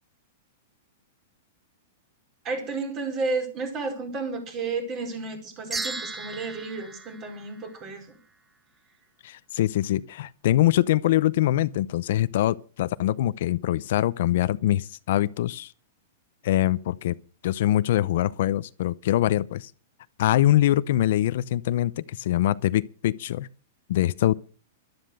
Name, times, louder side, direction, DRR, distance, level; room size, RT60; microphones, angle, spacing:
voice 1, 2.4-8.1, right 3 dB, 30° right, 4.7 m, -32 dB
sound 1, 5.7-8.2, right 3 dB, 10° right, 1.1 m, -36 dB
voice 2, 9.2-15.7 16.4-17.2 17.4-19.7 20.2-23.5 23.9-24.3, left 13 dB, 60° left, 0.7 m, -23 dB
12.5 x 12.0 x 6.6 m
supercardioid pair, 155°, 0 cm